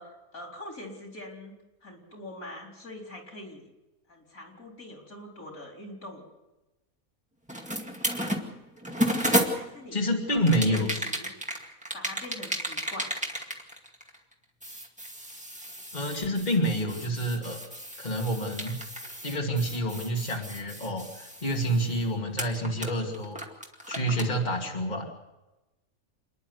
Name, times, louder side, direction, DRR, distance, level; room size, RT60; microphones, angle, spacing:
voice 1, 0.0-1.5 1.8-3.7 4.1-6.2 9.5-10.0 10.3-11.3 11.9-13.5, left 1 dB, 90° left, 2 dB, 4.5 m, -43 dB
sound 1, 7.5-9.9 10.5-14.3 14.6-22.0 22.4-24.3, equal, 5° right, 2.1 m, -33 dB
voice 2, 9.9-10.9 15.9-17.6 18.0-18.8 19.2-23.4 23.9-25.0, equal, 30° left, 0 dB, 2.7 m, -28 dB
27.5 x 10.5 x 9.5 m, 1.0 s
omnidirectional pair, 1.4 m